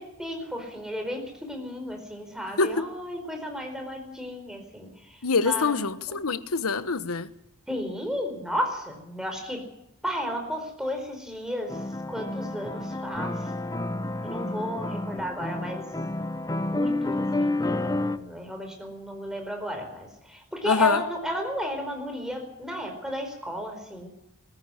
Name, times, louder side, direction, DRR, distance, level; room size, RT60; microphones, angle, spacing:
voice 1, 0.0-5.8 6.1-6.2 7.7-9.6 10.0-11.8 12.1-13.5 14.2-15.8 16.7-24.1, equal, 5° right, 4.7 m, -33 dB
voice 2, 2.6-2.9 5.2-7.3 20.6-21.0, left 4 dB, 70° left, 1.2 m, -25 dB
sound 1, 11.7-18.2, left 2 dB, 15° left, 0.7 m, -30 dB
21.0 x 14.5 x 10.0 m
head